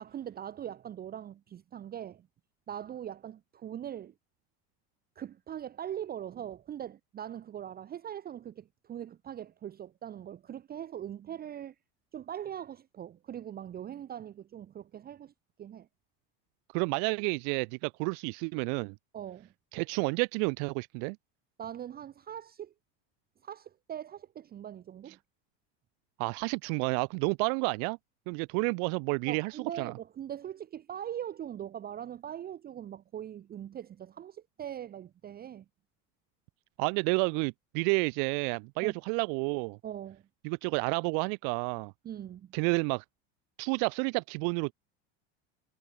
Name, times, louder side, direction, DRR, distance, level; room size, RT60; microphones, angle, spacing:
voice 1, 0.0-2.3 2.7-4.1 5.2-11.7 12.1-15.3 15.6-15.9 19.1-19.5 21.6-22.7 23.4-25.2 29.3-35.6 38.8-39.0 39.8-40.2 42.0-42.5, right 10 dB, 30° right, 0.7 m, -41 dB
voice 2, 16.7-18.9 19.7-21.2 26.2-28.0 28.3-29.9 36.8-39.8 40.4-41.9 42.5-43.0 43.6-44.7, right 40 dB or more, 70° right, 0.6 m, -30 dB
supercardioid pair, 110°, 32 cm